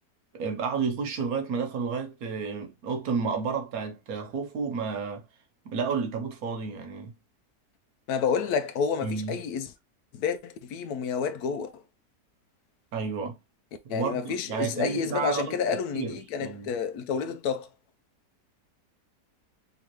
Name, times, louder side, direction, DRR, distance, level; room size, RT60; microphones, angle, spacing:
voice 1, 0.3-5.2 5.6-7.1 9.0-9.4 12.9-13.3 13.8-15.6 15.9-16.7, right 5 dB, 70° right, 1.3 m, -31 dB
voice 2, 8.1-9.7 10.1-11.7 13.9-17.7, left 6 dB, 75° left, 1.1 m, -29 dB
3.7 x 3.0 x 3.0 m
omnidirectional pair, 1.6 m